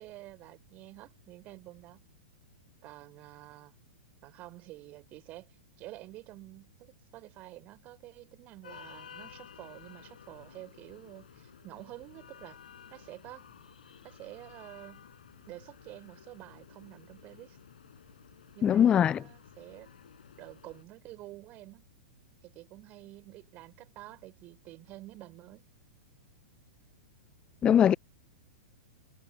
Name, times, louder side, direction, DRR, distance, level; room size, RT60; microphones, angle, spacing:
voice 1, 0.0-2.0 2.8-3.7 4.2-12.6 12.9-13.5 14.0-15.1 15.5-17.6 18.5-19.9 20.4-21.9 22.4-25.7, right 18 dB, 30° right, 4.0 m, -49 dB
sound 1, 8.6-20.8, left 8 dB, 60° left, 5.7 m, -54 dB
voice 2, 18.6-19.2 27.6-27.9, left 9 dB, 20° left, 0.4 m, -21 dB
figure-of-eight pair, 105°, 5 cm